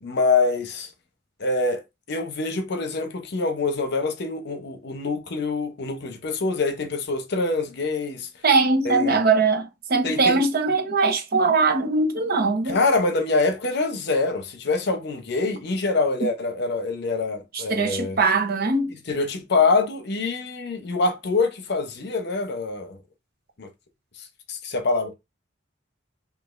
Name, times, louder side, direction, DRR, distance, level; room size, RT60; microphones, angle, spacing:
voice 1, 0.0-0.9 1.4-8.3 8.8-9.2 10.0-10.4 12.7-18.2 19.1-23.0 23.6-23.7 24.5-25.1, left 3 dB, 60° left, 0.8 m, -25 dB
voice 2, 8.4-12.8 16.2-16.3 17.5-18.9, right 3 dB, 55° right, 0.7 m, -21 dB
5.2 x 2.4 x 2.5 m
head